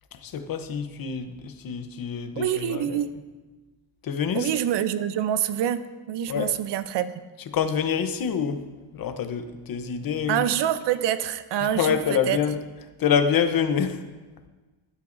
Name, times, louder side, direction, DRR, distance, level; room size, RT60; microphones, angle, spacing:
voice 1, 0.2-3.0 4.0-4.5 6.3-6.5 7.5-8.6 8.9-10.4 11.8-12.6 13.0-14.0, left 7 dB, 45° left, 8 dB, 0.9 m, -26 dB
voice 2, 2.4-3.1 4.3-5.8 6.1-7.1 10.3-12.4, right 10 dB, 60° right, 13 dB, 0.7 m, -26 dB
12.5 x 12.5 x 2.6 m, 1.3 s
cardioid pair, 140°, 48 cm